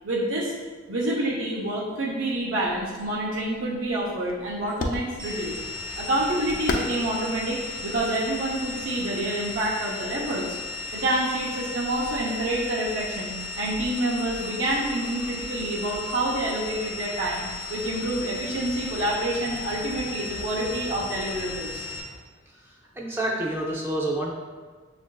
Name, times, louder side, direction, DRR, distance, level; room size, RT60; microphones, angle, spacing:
voice 1, 0.0-0.5 0.9-5.6 6.0-10.5 10.9-21.8, right 1 dB, 85° right, -5 dB, 0.7 m, -28 dB
sound 1, 2.6-8.9, left 2 dB, 45° left, 0.3 m, -36 dB
sound 2, 5.2-22.0, left 3 dB, 50° right, 0.9 m, -36 dB
voice 2, 23.0-24.3, right 1 dB, 10° right, -3 dB, 0.5 m, -27 dB
6.3 x 2.5 x 2.2 m, 1.4 s
head